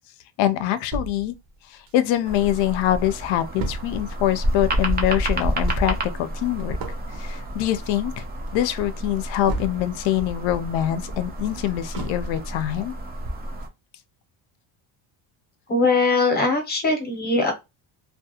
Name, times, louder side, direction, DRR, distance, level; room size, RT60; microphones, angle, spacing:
voice 1, 0.4-1.4 1.7-6.8 7.1-8.2 8.5-12.9, left 12 dB, 65° left, 0.5 m, -24 dB
sound 1, 0.9-2.5 2.8-2.9 3.1-10.1 10.5-12.7 13.1-13.2 13.6-13.7, right 2 dB, 45° right, 0.7 m, -36 dB
sound 2, 2.2-13.7, right 1 dB, 25° right, 0.3 m, -29 dB
voice 2, 15.7-17.5, left 3 dB, 20° left, 0.7 m, -21 dB
2.3 x 2.3 x 2.7 m
cardioid pair, 130°, 49 cm